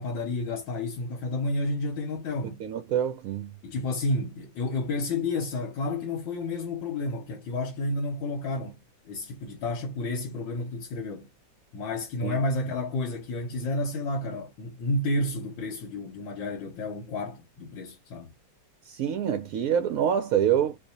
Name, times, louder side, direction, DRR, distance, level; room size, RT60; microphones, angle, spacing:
voice 1, 0.0-2.7 3.6-11.3 11.7-18.3, left 2 dB, 85° left, 1.7 m, -31 dB
voice 2, 2.6-3.5 12.2-12.4 18.9-20.8, right 9 dB, 75° right, 0.8 m, -26 dB
4.4 x 2.4 x 2.7 m
omnidirectional pair, 2.0 m